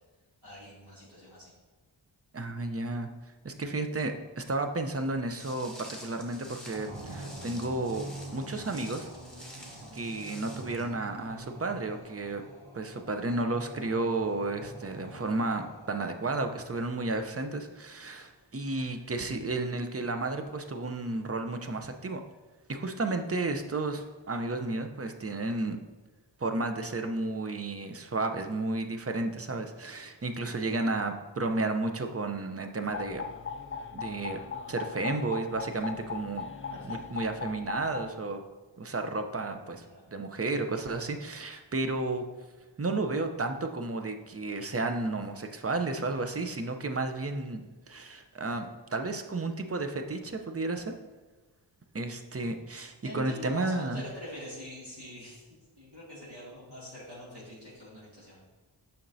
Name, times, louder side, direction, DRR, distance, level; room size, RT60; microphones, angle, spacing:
voice 1, 0.4-1.5 36.7-37.0 39.8-40.0 53.0-58.4, equal, 55° right, -7 dB, 2.2 m, -44 dB
voice 2, 2.3-3.1 3.4-8.1 8.3-9.1 9.9-12.4 12.7-22.2 22.7-25.8 26.4-33.3 33.9-34.4 34.7-36.5 36.8-38.4 38.8-42.2 42.8-50.9 51.9-54.0, right 2 dB, 30° right, 6 dB, 0.6 m, -32 dB
Walk footsteps, 5.3-10.8, left 1 dB, ahead, 1.4 m, -49 dB
sound 1, 6.7-16.6, right 1 dB, 80° right, 1.4 m, -46 dB
sound 2, 32.9-38.1, left 6 dB, 30° left, 0.3 m, -39 dB
7.1 x 5.8 x 2.7 m, 1.2 s
wide cardioid pair, 45°, 47 cm